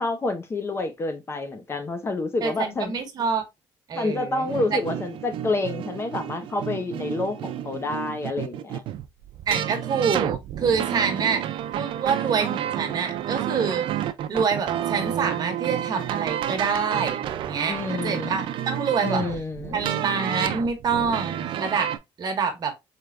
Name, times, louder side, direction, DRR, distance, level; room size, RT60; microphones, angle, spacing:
voice 1, 0.0-2.9 3.9-8.8 17.7-18.4 19.0-19.8, left 3 dB, 30° left, 0.7 m, -28 dB
voice 2, 2.4-3.4 3.9-4.8 9.5-11.4 11.7-13.8 14.3-17.7 18.0-19.2 19.7-21.9 22.2-22.7, right 6 dB, 50° right, 1.1 m, -26 dB
sound 1, 4.5-22.0, right 11 dB, 70° right, 0.4 m, -30 dB
4.3 x 3.4 x 2.4 m
cardioid pair, 135°, 9 cm